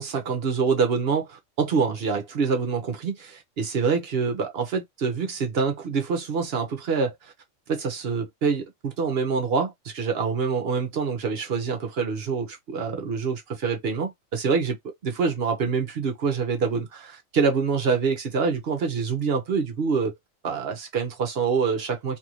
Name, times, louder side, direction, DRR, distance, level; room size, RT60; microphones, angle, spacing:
voice 1, 0.0-7.3 7.7-14.8 15.0-20.1 20.4-22.2, right 5 dB, 55° right, 0.8 m, -26 dB
2.7 x 2.5 x 2.9 m
omnidirectional pair, 1.4 m